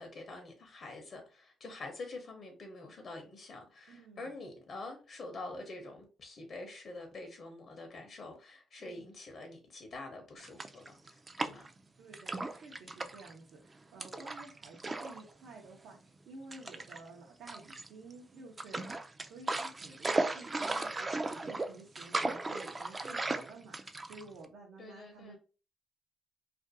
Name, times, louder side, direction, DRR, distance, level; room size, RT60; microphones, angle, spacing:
voice 1, 0.0-11.7 24.8-25.4, left 2 dB, 55° left, 0.6 m, -46 dB
voice 2, 3.9-4.3 8.8-9.1 12.0-25.4, right 3 dB, 80° right, 0.6 m, -52 dB
sound 1, 10.4-11.8 12.1-13.3 14.0-15.2 15.5-15.6 16.5-17.0 17.5-18.1 18.6-24.4, right 2 dB, 25° right, 0.3 m, -36 dB
2.5 x 2.2 x 2.6 m
cardioid pair, 90°, 0 cm